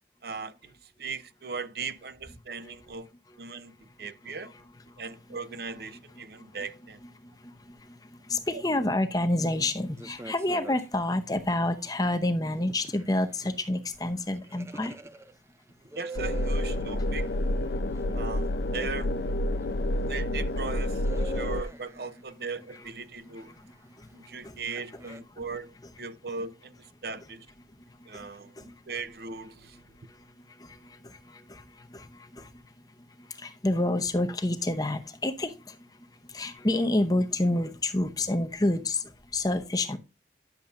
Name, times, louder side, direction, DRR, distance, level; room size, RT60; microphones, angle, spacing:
voice 1, 0.2-3.1 3.4-4.5 5.0-7.0 8.5-8.6 15.9-17.3 18.1-19.1 20.1-23.5 24.1-27.5 28.0-29.8 32.4-32.5, right 4 dB, 60° right, 0.7 m, -38 dB
voice 2, 6.2-6.6 7.2-15.0 23.2-24.6 24.9-25.0 25.4-25.5 27.8-28.8 29.9-40.0, left 1 dB, 20° left, 0.7 m, -30 dB
sound 1, 9.9-10.8 11.4-12.0 12.5-15.4 15.7-17.0 17.9-18.1 19.5-22.2 22.8-22.9 25.0-25.2, right 3 dB, 15° right, 0.4 m, -44 dB
sound 2, 16.2-21.6, left 1 dB, 70° left, 0.5 m, -29 dB
10.5 x 6.9 x 2.5 m
head